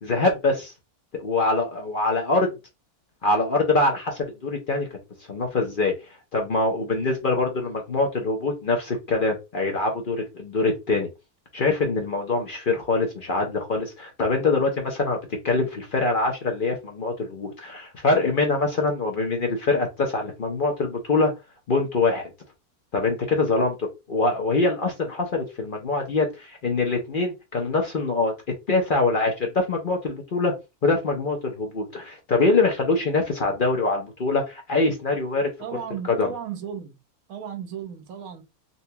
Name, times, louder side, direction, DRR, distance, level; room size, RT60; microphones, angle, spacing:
voice 1, 0.0-0.7 1.1-2.5 3.2-4.9 5.3-5.9 6.3-11.1 11.5-15.2 15.4-21.3 21.7-22.3 22.9-28.3 28.7-30.5 30.8-35.5 36.1-36.3, left 3 dB, 50° left, 0.6 m, -24 dB
voice 2, 35.6-36.9 37.3-38.4, right 8 dB, 70° right, 1.2 m, -35 dB
4.0 x 2.2 x 2.7 m
omnidirectional pair, 1.6 m